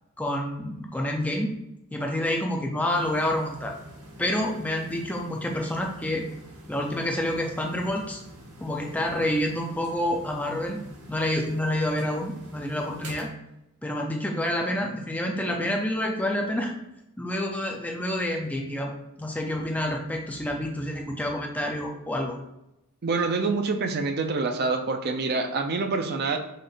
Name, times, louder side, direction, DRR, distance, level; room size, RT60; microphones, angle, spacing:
voice 1, 0.2-1.5 1.9-3.7 4.2-6.2 6.7-8.2 8.6-10.8 11.1-13.3 13.8-16.7 17.2-22.3, left 1 dB, 5° left, 1 dB, 0.4 m, -28 dB
sound 1, 2.9-13.3, right 1 dB, 85° right, 1.0 m, -46 dB
voice 2, 23.0-26.4, right 3 dB, 50° right, 6 dB, 0.5 m, -26 dB
5.3 x 2.5 x 3.8 m, 0.87 s
head